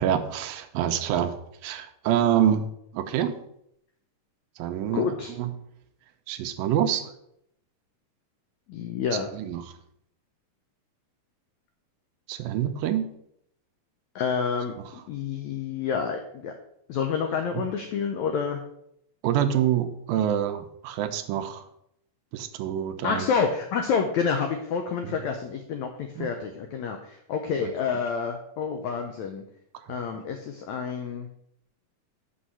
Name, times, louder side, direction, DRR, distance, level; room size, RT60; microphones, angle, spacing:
voice 1, 0.0-1.4 1.6-2.7 2.9-3.3 4.6-5.1 5.4-5.5 6.3-7.1 9.3-9.6 12.3-13.1 19.2-21.7 22.3-23.3 25.0-25.2 26.2-26.3, right 10 dB, 85° right, 8 dB, 2.4 m, -26 dB
voice 2, 4.9-5.3 8.7-9.3 14.1-16.5 16.9-18.6 23.0-29.4 29.9-31.3, left 6 dB, 85° left, 5 dB, 1.6 m, -28 dB
6.3 x 6.3 x 5.5 m, 0.74 s
omnidirectional pair, 4.1 m